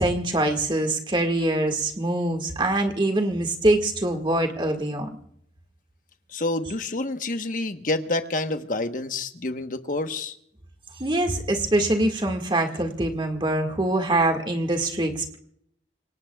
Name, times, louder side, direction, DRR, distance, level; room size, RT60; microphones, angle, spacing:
voice 1, 0.0-5.1 11.0-15.4, right 1 dB, 25° right, 4 dB, 1.9 m, -24 dB
voice 2, 6.3-10.3, left 2 dB, 50° left, 8 dB, 1.1 m, -28 dB
26.5 x 21.5 x 2.4 m, 0.69 s
head